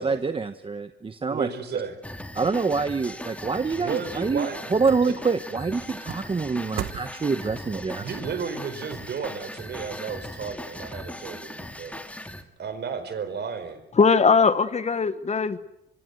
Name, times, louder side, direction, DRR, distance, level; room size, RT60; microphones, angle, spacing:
voice 1, 0.0-1.5 2.3-8.1, right 4 dB, 25° right, 10 dB, 1.1 m, -26 dB
voice 2, 1.3-2.0 3.8-4.6 5.0-5.1 8.0-12.0 12.6-13.8, right 6 dB, 55° right, 10 dB, 4.4 m, -33 dB
sound 1, 2.0-12.4, left 1 dB, 5° left, 2.2 m, -39 dB
sound 2, 4.0-10.3 10.7-10.8, right 11 dB, 80° right, 1.3 m, -43 dB
voice 3, 14.0-15.6, left 5 dB, 35° left, 13 dB, 1.3 m, -20 dB
24.0 x 24.0 x 7.9 m, 0.87 s
cardioid pair, 90°, 20 cm